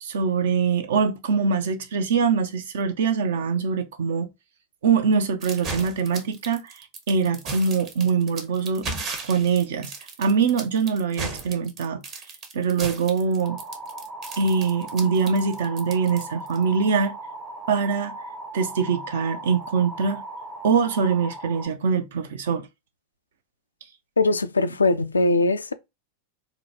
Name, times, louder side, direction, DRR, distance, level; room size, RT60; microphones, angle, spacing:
voice 1, 0.0-4.3 4.8-8.9 9.2-9.9 10.2-12.0 12.5-13.6 14.4-17.2 17.7-18.2 18.5-20.2 20.6-22.7, right 5 dB, 60° right, 0.5 m, -23 dB
sound 1, 5.4-16.6, right 3 dB, 35° right, 0.9 m, -35 dB
sound 2, 13.4-21.7, right 1 dB, 10° right, 0.6 m, -38 dB
voice 2, 24.2-25.7, left 3 dB, 75° left, 0.3 m, -21 dB
3.9 x 2.2 x 2.6 m
figure-of-eight pair, 90°, 0 cm